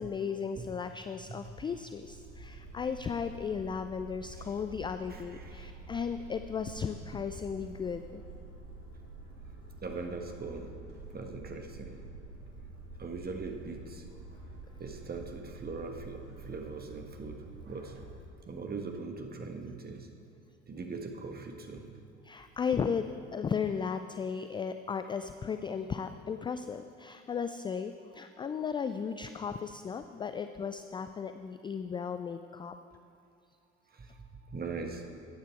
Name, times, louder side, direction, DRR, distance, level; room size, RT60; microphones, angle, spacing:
voice 1, 0.0-8.2 22.2-32.7, left 6 dB, 15° left, 9 dB, 0.3 m, -35 dB
sound 1, 2.0-18.2, right 3 dB, 75° right, 3.3 m, -48 dB
voice 2, 5.1-5.7 9.8-10.7 11.1-12.0 13.0-14.0 14.8-17.4 17.7-17.9 18.5-20.1 20.7-21.8 34.0-34.1 34.5-35.0, right 4 dB, 25° right, 4 dB, 1.6 m, -40 dB
14.5 x 9.2 x 4.6 m, 2.6 s
figure-of-eight pair, 65°, 36 cm